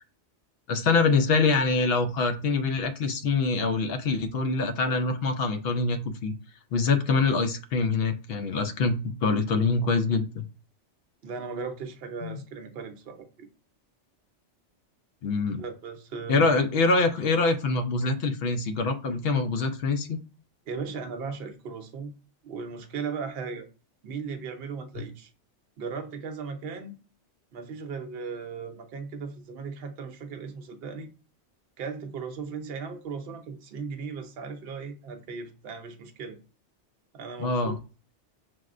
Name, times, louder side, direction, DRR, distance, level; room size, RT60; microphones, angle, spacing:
voice 1, 0.7-6.3 6.7-10.4 12.2-12.4 15.2-15.6 16.3-20.2 25.0-25.1 37.4-37.8, left 3 dB, 65° left, 0.7 m, -25 dB
voice 2, 11.2-13.5 15.5-16.5 20.7-22.1 22.4-23.7 24.0-25.3 25.8-26.9 27.5-31.1 31.8-36.4 37.1-37.8, right 5 dB, 60° right, 0.8 m, -37 dB
5.9 x 2.1 x 2.4 m
omnidirectional pair, 1.2 m